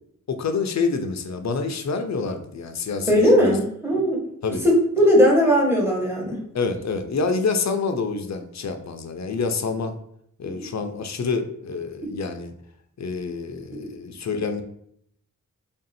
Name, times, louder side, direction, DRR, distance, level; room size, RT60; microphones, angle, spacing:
voice 1, 0.3-3.5 4.4-4.6 6.5-10.0 10.4-12.5 13.0-14.6, left 4 dB, 60° left, 7 dB, 0.5 m, -27 dB
voice 2, 3.1-4.2 4.6-6.4, equal, 5° right, -3 dB, 1.1 m, -18 dB
3.4 x 2.6 x 4.1 m, 0.71 s
wide cardioid pair, 120°, 31 cm